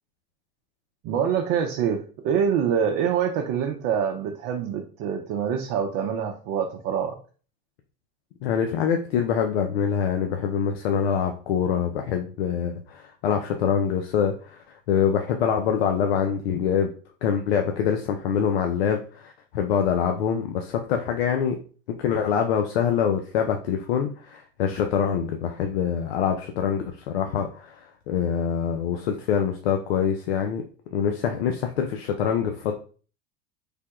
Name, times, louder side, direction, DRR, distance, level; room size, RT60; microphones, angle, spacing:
voice 1, 1.0-7.2, right 8 dB, 60° right, 2 dB, 0.6 m, -25 dB
voice 2, 8.4-14.6 14.9-16.9 17.2-21.6 22.0-27.8 28.1-30.6 30.9-32.7, left 7 dB, 85° left, 4 dB, 0.5 m, -25 dB
3.4 x 2.2 x 2.9 m, 0.39 s
hypercardioid pair, 90°, 30 cm